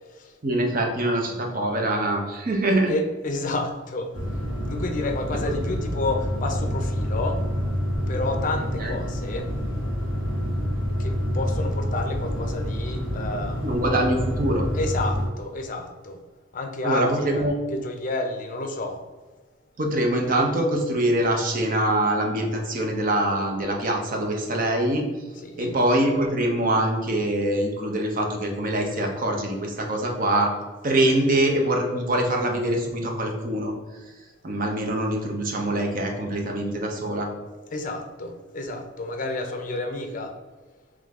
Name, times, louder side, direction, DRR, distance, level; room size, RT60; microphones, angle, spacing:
voice 1, 0.4-3.0 8.8-9.0 13.6-14.7 16.8-17.5 19.8-25.0 25.6-30.5 30.8-33.7 34.4-37.3, right 1 dB, 45° right, 2 dB, 0.7 m, -24 dB
voice 2, 2.9-4.1 4.7-7.4 8.1-9.5 11.0-13.8 14.7-16.2 16.5-17.4 17.7-19.0 25.4-25.8 37.7-40.4, left 2 dB, 40° left, 5 dB, 0.5 m, -30 dB
sound 1, 4.1-15.3, equal, 75° right, 1.3 m, -27 dB
3.7 x 3.2 x 3.6 m, 1.3 s
head